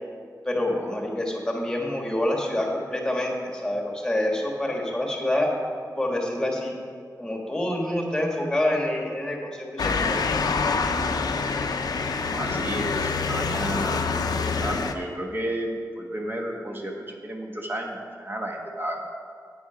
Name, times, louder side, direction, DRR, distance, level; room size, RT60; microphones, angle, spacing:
voice 1, 0.4-5.6 5.9-6.7 7.2-10.2, left 1 dB, 10° left, 0 dB, 1.5 m, -27 dB
Motor vehicle (road) / Siren, 9.8-14.9, left 4 dB, 75° left, 0.6 m, -26 dB
voice 2, 12.3-14.0 14.6-19.0, right 1 dB, 30° right, 1 dB, 1.2 m, -32 dB
8.9 x 8.6 x 5.0 m, 2.1 s
wide cardioid pair, 150°, 7 cm